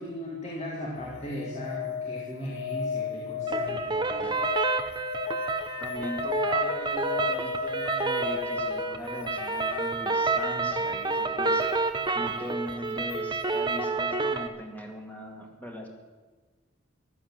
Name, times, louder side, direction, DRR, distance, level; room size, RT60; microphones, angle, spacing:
voice 1, 0.0-4.4, equal, 35° left, -3 dB, 2.5 m, -37 dB
sound 1, 1.0-10.8 13.1-13.2, left 6 dB, 90° left, 0.9 m, -35 dB
sound 2, 3.5-14.5, right 3 dB, 20° right, 0.9 m, -29 dB
voice 2, 5.8-11.7 12.1-15.9, equal, 10° left, 2 dB, 2.2 m, -39 dB
15.0 x 12.0 x 7.5 m, 1.3 s
head